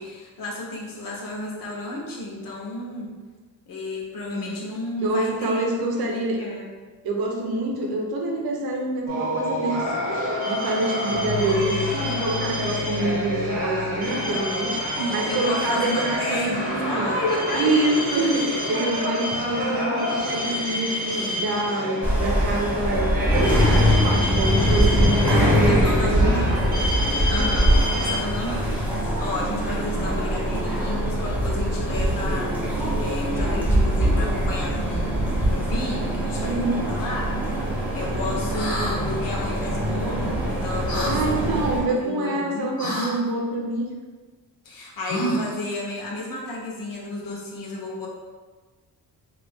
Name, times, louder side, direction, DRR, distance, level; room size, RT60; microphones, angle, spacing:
voice 1, 0.0-3.1 3.7-6.7 15.0-18.1 25.7-26.9 27.3-32.5 33.0-37.4 37.9-41.5 41.9-42.8 44.6-48.1, left 2 dB, 65° left, -2 dB, 0.8 m, -32 dB
voice 2, 4.3-4.6 5.0-6.4 7.0-17.2 17.5-26.8 36.4-37.0 41.0-43.9, right 2 dB, 85° right, 0 dB, 0.7 m, -26 dB
sound 1, 9.1-28.2, left 1 dB, 25° right, 0.9 m, -28 dB
sound 2, 22.0-41.8, equal, 5° right, 0.5 m, -23 dB
sound 3, 38.5-39.0 40.9-41.1 42.8-43.1 45.0-45.6, right 1 dB, 85° left, 1.2 m, -27 dB
2.9 x 2.4 x 3.3 m, 1.4 s
wide cardioid pair, 180°, 36 cm